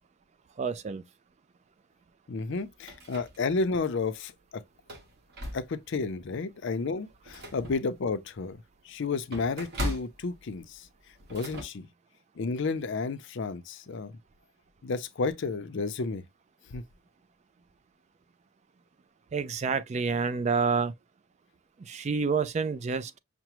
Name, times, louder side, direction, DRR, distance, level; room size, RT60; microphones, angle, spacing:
voice 1, 0.6-1.0 19.3-20.9 21.8-23.2, right 5 dB, 35° right, 0.3 m, -28 dB
voice 2, 2.3-4.6 5.5-10.9 11.3-11.9 12.4-14.2 14.8-16.2 16.7-16.8, left 4 dB, 60° left, 0.5 m, -32 dB
sound 1, 2.5-3.8 4.2-4.3 4.8-6.0 6.5-6.6 7.0-11.6, equal, 50° right, 1.2 m, -39 dB
5.8 x 2.0 x 3.0 m
head